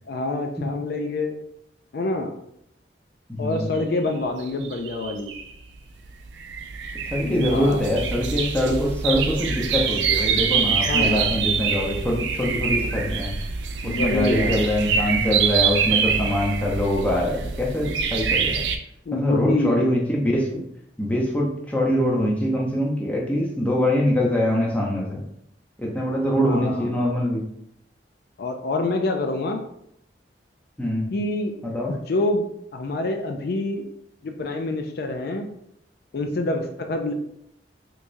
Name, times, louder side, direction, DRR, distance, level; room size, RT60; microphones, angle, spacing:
voice 1, 0.1-1.4 1.9-2.3 3.4-5.3 7.2-7.9 10.9-11.3 13.8-14.7 19.1-19.9 26.4-27.0 28.4-29.6 31.1-31.5 31.9-33.8 34.2-35.5 36.1-37.1, left 2 dB, 60° left, 4 dB, 0.4 m, -26 dB
voice 2, 3.3-3.7 7.1-13.3 13.8-18.6 19.1-20.6 21.0-25.2 25.8-27.5 30.8-31.1 31.6-31.9, left 1 dB, 10° left, -2 dB, 0.6 m, -23 dB
sound 1, 4.4-5.5 6.0-18.8, right 6 dB, 85° right, 0.4 m, -25 dB
3.4 x 3.1 x 2.6 m, 0.73 s
head